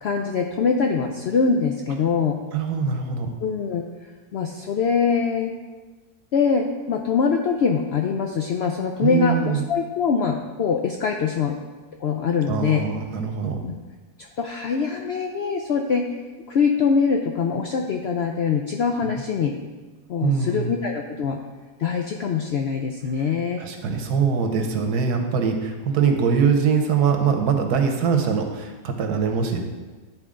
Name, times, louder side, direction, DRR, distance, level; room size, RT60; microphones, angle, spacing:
voice 1, 0.0-2.4 3.4-3.8 4.3-5.5 6.3-11.6 12.0-12.8 13.6-13.8 14.2-16.1 16.5-19.6 20.1-21.4 21.8-23.6, left 5 dB, 75° left, 3 dB, 0.6 m, -23 dB
voice 2, 2.5-3.3 9.0-9.6 12.5-13.6 19.0-19.2 20.2-20.7 23.2-23.3 23.6-29.6, right 6 dB, 90° right, 4 dB, 1.4 m, -23 dB
10.5 x 4.4 x 3.7 m, 1.3 s
omnidirectional pair, 1.6 m